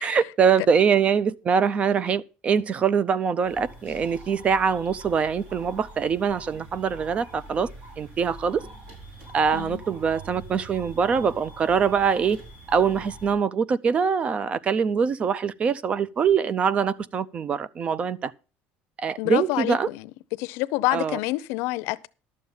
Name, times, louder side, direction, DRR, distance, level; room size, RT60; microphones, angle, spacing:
voice 1, 0.0-7.7 8.0-8.6 9.3-12.4 12.7-18.3 19.0-19.9 20.9-21.2, right 6 dB, 30° right, 0.4 m, -23 dB
sound 1, 3.4-13.3, right 2 dB, 45° right, 5.9 m, -44 dB
voice 2, 19.2-20.0 20.4-22.0, left 20 dB, 80° left, 0.6 m, -27 dB
12.0 x 7.3 x 5.5 m
cardioid pair, 160°, 4 cm